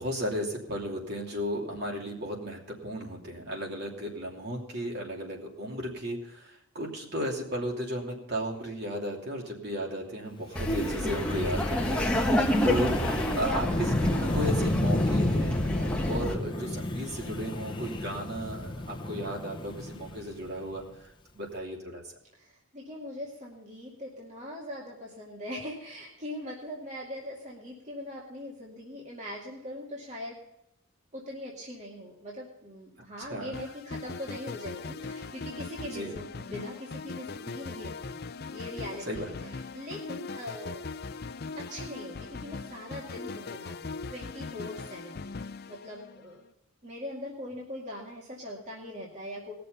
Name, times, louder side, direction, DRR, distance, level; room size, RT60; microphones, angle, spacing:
voice 1, 0.0-12.3 12.6-22.0 33.2-33.6 35.9-36.1 39.1-39.3, equal, 50° right, -1 dB, 3.0 m, -35 dB
Wind, 10.5-20.8, left 1 dB, 25° left, 1.0 m, -32 dB
Laughter, 10.6-16.3, equal, 5° left, 1.2 m, -28 dB
voice 2, 12.3-12.6 22.3-30.5 31.1-38.2 38.5-40.9 41.6-46.4 46.8-49.5, left 1 dB, 35° right, -4 dB, 2.3 m, -41 dB
sound 1, 33.5-46.5, left 4 dB, 50° left, 0.6 m, -40 dB
20.0 x 6.8 x 5.6 m, 0.83 s
head